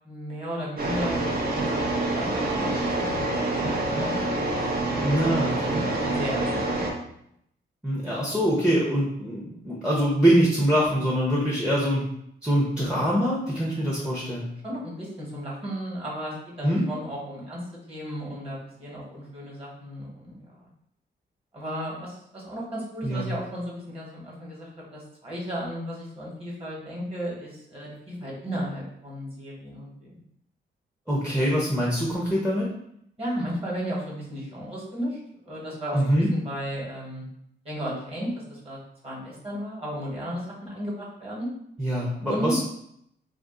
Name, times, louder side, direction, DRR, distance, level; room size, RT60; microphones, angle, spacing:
voice 1, 0.0-2.7 3.0-3.7 4.0-4.8 6.0-6.9 14.6-17.6 17.9-20.7 21.5-30.2 33.2-35.2 35.4-37.2 37.6-38.8 39.0-41.5 42.3-42.6, equal, 30° right, -5 dB, 1.2 m, -34 dB
sound 1, 0.8-6.9, right 2 dB, 55° right, 0.7 m, -26 dB
voice 2, 5.0-5.8 7.8-12.0 12.4-14.4 16.6-16.8 23.0-23.3 31.1-32.7 35.9-36.3 41.8-42.6, equal, 5° right, -5 dB, 0.6 m, -24 dB
2.5 x 2.4 x 3.6 m, 0.73 s
cardioid pair, 115°, 19 cm